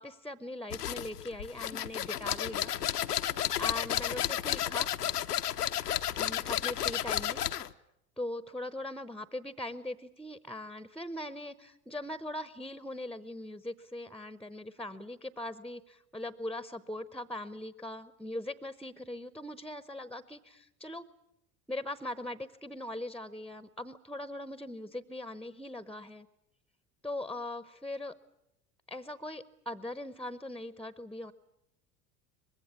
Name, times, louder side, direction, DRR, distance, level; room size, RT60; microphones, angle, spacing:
voice 1, 0.0-2.7 3.6-4.9 6.2-7.4 8.2-21.1 21.7-26.3 27.0-28.1 28.9-31.3, left 1 dB, ahead, 15 dB, 0.8 m, -40 dB
sound 1, 0.7-7.7, left 11 dB, 80° left, 0.9 m, -32 dB
24.0 x 21.0 x 8.5 m, 0.81 s
figure-of-eight pair, 75°, 46 cm